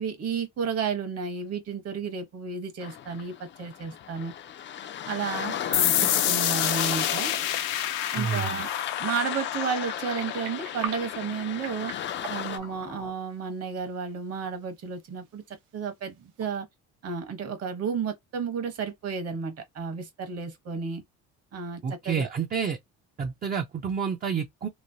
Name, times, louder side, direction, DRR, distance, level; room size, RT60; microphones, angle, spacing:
voice 1, 0.0-4.3 5.1-7.3 8.1-8.7 9.0-11.9 12.3-16.7 17.0-21.0 21.5-21.8 22.0-22.3, right 6 dB, 50° right, 1.1 m, -32 dB
sound 1, 2.8-12.6, left 9 dB, 35° left, 0.4 m, -35 dB
sound 2, 5.7-13.1, left 11 dB, 85° left, 0.6 m, -30 dB
sound 3, 6.8-16.5, right 7 dB, 75° right, 0.8 m, -46 dB
voice 2, 8.2-8.6 21.8-22.8 23.2-24.7, right 6 dB, 30° right, 0.5 m, -29 dB
3.1 x 2.0 x 2.7 m
cardioid pair, 105°, 32 cm